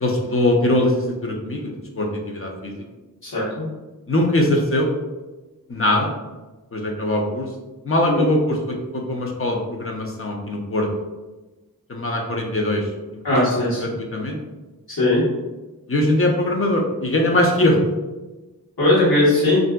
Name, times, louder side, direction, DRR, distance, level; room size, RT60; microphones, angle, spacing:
voice 1, 0.0-2.7 4.1-4.9 5.7-6.1 6.7-7.5 7.8-10.9 11.9-12.9 13.3-13.5 13.8-14.4 15.9-17.8, left 1 dB, 40° left, 1 dB, 0.6 m, -21 dB
voice 2, 3.2-3.7 8.1-8.2 13.2-13.8 14.9-15.2 18.8-19.6, left 1 dB, 90° left, -9 dB, 1.2 m, -19 dB
3.5 x 2.6 x 2.2 m, 1.1 s
wide cardioid pair, 70°, 35 cm